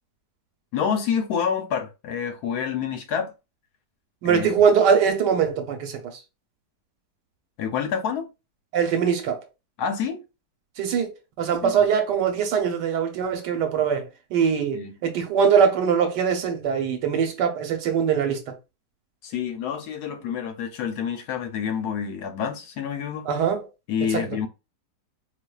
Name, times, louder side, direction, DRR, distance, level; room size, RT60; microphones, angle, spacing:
voice 1, 0.7-3.3 4.2-4.5 7.6-8.3 9.8-10.2 11.6-11.8 14.7-14.9 19.2-23.3 23.9-24.5, left 7 dB, 70° left, 1.1 m, -28 dB
voice 2, 4.2-6.2 8.7-9.4 10.8-11.1 11.4-18.5 23.3-23.6 24.1-24.2, right 7 dB, 80° right, 1.4 m, -22 dB
4.1 x 2.7 x 2.3 m
omnidirectional pair, 1.9 m